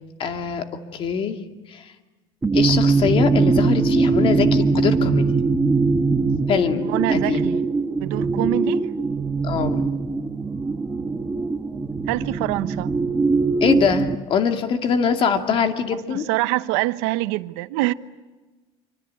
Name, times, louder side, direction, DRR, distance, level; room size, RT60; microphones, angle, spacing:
voice 1, 0.2-0.7 0.9-1.4 1.7-1.9 2.5-5.3 6.5-7.4 9.4-9.8 13.6-16.3, left 6 dB, 40° left, 2.4 m, -23 dB
sound 1, 2.4-14.1, right 4 dB, 10° right, 1.2 m, -21 dB
voice 2, 6.8-7.6 8.0-8.9 12.1-12.9 16.1-17.9, right 19 dB, 90° right, 1.0 m, -25 dB
26.5 x 25.0 x 8.6 m
cardioid pair, 150°, 14 cm